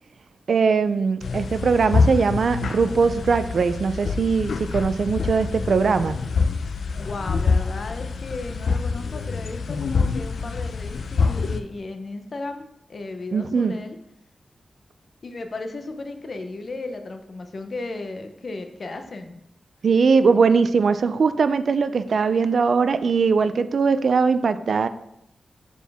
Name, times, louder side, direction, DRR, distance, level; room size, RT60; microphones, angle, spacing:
voice 1, 0.5-6.2 13.3-13.7 19.8-24.9, right 5 dB, 70° right, 12 dB, 0.3 m, -20 dB
sound 1, 1.2-11.6, left 4 dB, 90° left, 0.4 m, -26 dB
voice 2, 7.0-14.0 15.2-19.4, left 3 dB, 50° left, 6 dB, 0.7 m, -35 dB
6.8 x 4.5 x 3.4 m, 0.79 s
wide cardioid pair, 110°, 0 cm